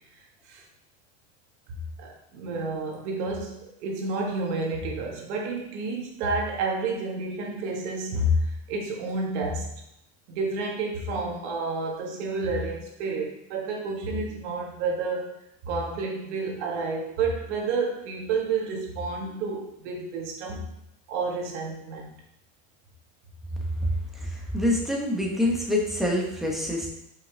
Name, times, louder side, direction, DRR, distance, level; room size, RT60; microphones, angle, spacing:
voice 1, 2.0-9.7 10.3-15.4 15.6-20.7 21.1-22.1, right 3 dB, 80° right, 0 dB, 1.7 m, -30 dB
voice 2, 24.2-26.9, left 1 dB, ahead, -2 dB, 1.2 m, -26 dB
5.4 x 5.3 x 3.4 m, 0.80 s
supercardioid pair, 135°, 34 cm